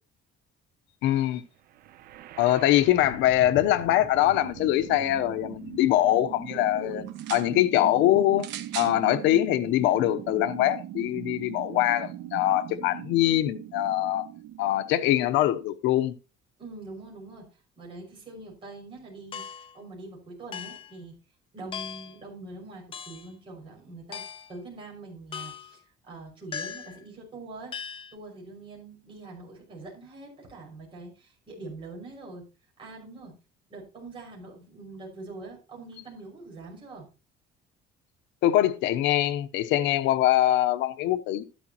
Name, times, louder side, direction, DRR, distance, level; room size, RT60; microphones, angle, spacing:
voice 1, 1.0-1.4 2.4-7.0 7.3-8.5 8.7-14.3 14.6-16.1 38.4-41.4, left 13 dB, 80° left, 0.9 m, -23 dB
sound 1, 1.7-15.7, right 12 dB, 55° right, 0.7 m, -41 dB
voice 2, 6.5-7.1 16.6-17.5 17.8-21.1 21.5-32.5 32.8-33.4 33.7-37.1, right 2 dB, 30° right, 6.1 m, -44 dB
sound 2, 7.1-7.5 8.4-9.0 9.9-10.0, right 12 dB, 70° right, 1.3 m, -38 dB
sound 3, 19.3-19.8 20.5-21.0 21.7-22.2 22.9-23.3 24.1-24.6 25.3-25.8 26.5-27.0 27.7-28.1, left 7 dB, 30° left, 0.6 m, -38 dB
12.5 x 11.5 x 3.0 m
cardioid pair, 175°, 19 cm